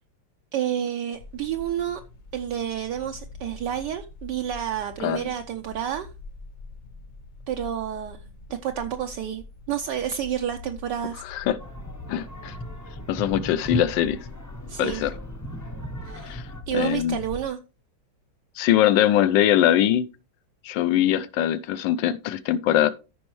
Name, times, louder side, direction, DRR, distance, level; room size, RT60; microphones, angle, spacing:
voice 1, 0.5-2.0 2.3-6.1 7.5-8.2 8.6-11.2 14.7-15.0 16.0-16.4 16.7-17.6, right 10 dB, 70° right, 1.1 m, -29 dB
sound 1, 1.1-17.5, left 3 dB, 55° left, 1.4 m, -44 dB
voice 2, 5.0-5.3 11.2-11.6 12.1-12.5 13.1-14.2 14.8-15.1 16.2-16.4 16.7-17.2 18.6-20.1 20.6-22.9, left 11 dB, 75° left, 1.2 m, -22 dB
sound 2, 11.6-16.6, right 1 dB, 20° left, 0.5 m, -36 dB
14.0 x 5.3 x 3.1 m
omnidirectional pair, 2.2 m